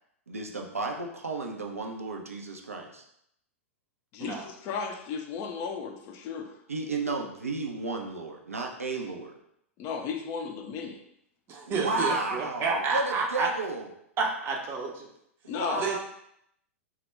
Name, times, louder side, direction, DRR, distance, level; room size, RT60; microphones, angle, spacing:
voice 1, 0.3-3.0 6.7-9.3 11.7-13.9 15.4-16.0, right 3 dB, 85° right, 1 dB, 0.4 m, -33 dB
voice 2, 4.1-6.5 9.8-11.0 15.5-15.9, left 6 dB, 35° left, 4 dB, 0.3 m, -34 dB
voice 3, 11.5-13.5 14.2-15.1 15.8-16.0, right 4 dB, 30° right, 0 dB, 0.5 m, -30 dB
2.2 x 2.0 x 3.2 m, 0.75 s
figure-of-eight pair, 100°, 7 cm